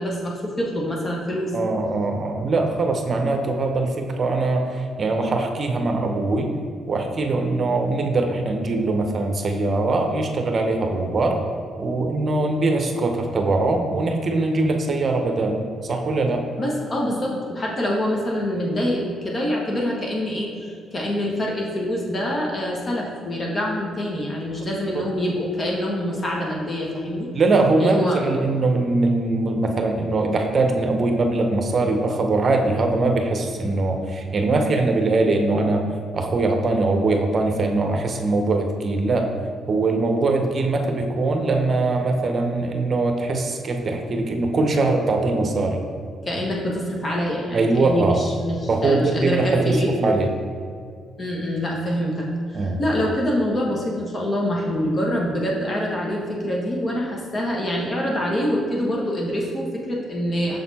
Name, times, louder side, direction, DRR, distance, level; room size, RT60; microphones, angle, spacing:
voice 1, 0.0-1.5 16.6-27.3 27.8-28.2 46.2-50.1 51.2-60.6, equal, 35° left, -2 dB, 1.2 m, -25 dB
voice 2, 1.5-6.5 6.9-11.4 11.8-16.4 24.9-25.0 27.3-35.8 36.1-39.3 39.7-45.8 47.5-48.2 48.7-50.3 52.5-52.8, right 2 dB, 45° right, 4 dB, 0.8 m, -22 dB
6.6 x 4.2 x 4.1 m, 2.2 s
cardioid pair, 90°, 0 cm